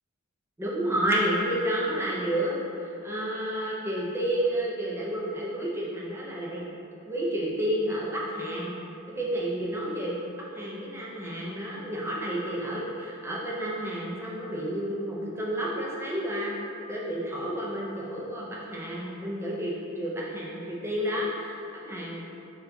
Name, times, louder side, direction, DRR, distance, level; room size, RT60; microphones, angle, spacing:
voice 1, 0.6-6.7 7.1-8.7 9.1-16.6 16.9-21.6 21.8-22.2, right 1 dB, 10° right, -5 dB, 0.5 m, -30 dB
4.1 x 3.8 x 2.2 m, 2.7 s
head